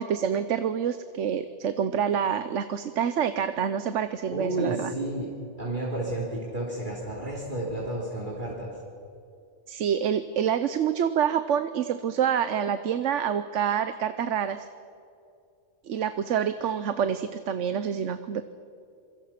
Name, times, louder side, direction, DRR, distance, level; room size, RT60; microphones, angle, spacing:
voice 1, 0.0-4.9 9.7-14.6 15.8-18.4, right 8 dB, 80° right, 11 dB, 1.1 m, -27 dB
voice 2, 4.3-5.3 5.6-8.8 16.6-16.8, right 1 dB, 40° right, -4 dB, 3.7 m, -32 dB
27.0 x 23.5 x 5.9 m, 2.5 s
omnidirectional pair, 1.2 m